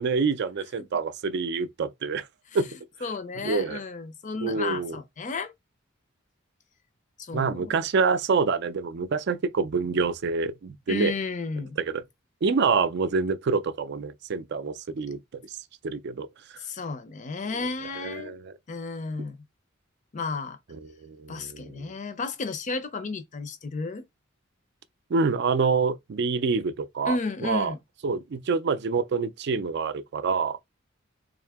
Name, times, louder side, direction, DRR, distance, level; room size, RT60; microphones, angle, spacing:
voice 1, 0.0-2.2 2.5-2.7 3.4-3.8 4.4-5.0 7.3-11.1 11.8-12.0 12.4-15.2 15.8-16.3 18.0-18.5 21.0-21.9 25.1-27.2 27.4-27.7 28.0-30.6, right 4 dB, 60° right, 0.4 m, -26 dB
voice 2, 3.0-5.5 7.2-7.8 10.9-11.8 16.6-18.4 18.7-19.4 20.1-20.6 21.3-24.0 27.1-27.8, left 4 dB, 40° left, 0.5 m, -33 dB
3.6 x 2.7 x 3.5 m
head